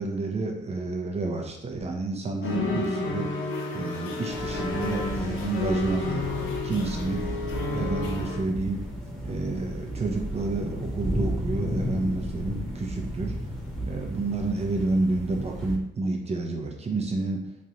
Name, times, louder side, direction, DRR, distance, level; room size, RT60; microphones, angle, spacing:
voice 1, 0.0-3.2 3.7-7.2 7.7-8.8 9.2-13.3 13.8-17.4, right 3 dB, 30° right, 1 dB, 0.8 m, -29 dB
sound 1, 2.4-8.4, left 3 dB, 75° left, 0.7 m, -31 dB
sound 2, 4.3-15.8, equal, ahead, 1.2 m, -33 dB
3.2 x 2.5 x 4.0 m, 0.80 s
cardioid pair, 90°, 20 cm